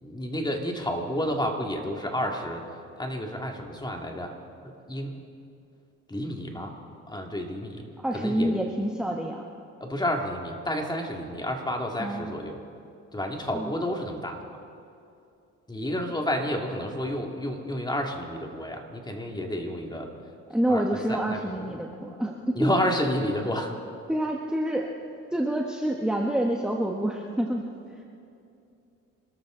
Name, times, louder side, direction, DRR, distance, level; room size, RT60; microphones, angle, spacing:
voice 1, 0.0-2.6 3.0-4.3 4.9-5.1 6.1-6.8 7.1-7.8 8.1-8.6 9.8-12.6 13.1-14.4 15.7-20.1 20.7-21.8 22.5-23.7, equal, 15° left, 2 dB, 2.3 m, -30 dB
voice 2, 8.0-9.4 12.0-12.3 13.5-13.7 20.5-22.7 24.1-24.9 25.3-27.7, right 1 dB, 5° right, 0 dB, 1.3 m, -27 dB
26.5 x 13.0 x 3.9 m, 2.6 s
cardioid pair, 90°, 30 cm